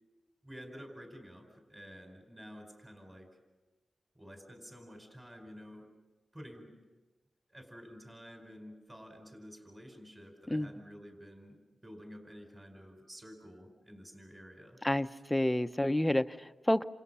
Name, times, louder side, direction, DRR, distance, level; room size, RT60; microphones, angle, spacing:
voice 1, 0.4-3.4 4.1-5.9 6.3-6.8 7.5-11.6 11.8-14.8, equal, 15° right, 4 dB, 4.8 m, -50 dB
voice 2, 14.8-16.8, left 1 dB, 10° left, 10 dB, 0.8 m, -29 dB
29.0 x 27.5 x 5.7 m, 1.2 s
wide cardioid pair, 95°, 0 cm